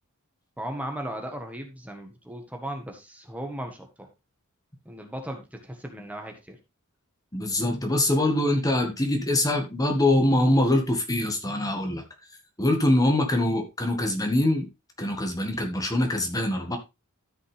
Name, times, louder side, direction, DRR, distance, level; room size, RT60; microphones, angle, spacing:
voice 1, 0.6-4.1 4.8-6.6, right 1 dB, 5° right, 3 dB, 1.4 m, -36 dB
voice 2, 7.3-12.0 12.6-14.7 15.0-16.8, left 1 dB, 15° left, 4 dB, 1.5 m, -23 dB
13.0 x 5.6 x 3.4 m, 0.25 s
head